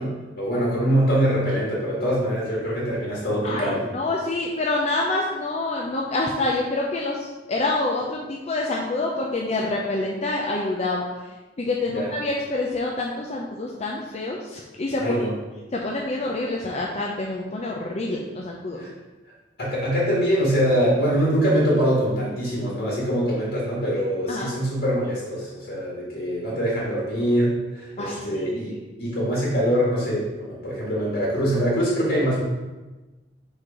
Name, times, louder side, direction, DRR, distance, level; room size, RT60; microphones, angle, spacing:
voice 1, 0.0-3.9 11.9-12.1 15.0-15.4 18.7-18.9 19.6-32.4, equal, 65° left, -5 dB, 1.7 m, -23 dB
voice 2, 3.4-11.0 11.6-15.1 15.7-18.8 24.3-24.5 28.0-28.8, left 2 dB, 35° left, -2 dB, 0.6 m, -27 dB
4.6 x 4.3 x 4.9 m, 1.1 s
head